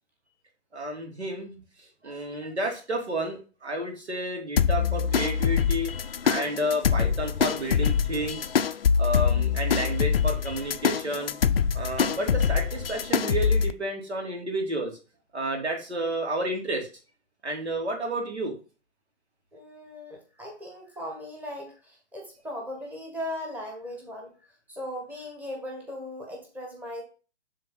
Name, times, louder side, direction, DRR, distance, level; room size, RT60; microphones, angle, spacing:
voice 1, 0.7-1.6 2.0-5.9 6.2-8.5 9.0-11.3 11.7-14.9 15.3-16.9 17.4-18.5, right 1 dB, 65° right, 2 dB, 2.9 m, -31 dB
sound 1, 4.6-13.7, left 7 dB, 55° left, 0.6 m, -24 dB
voice 2, 19.5-24.3 24.7-27.0, left 1 dB, 5° right, 1 dB, 1.3 m, -38 dB
10.0 x 3.6 x 3.9 m, 0.35 s
figure-of-eight pair, 130°, 35 cm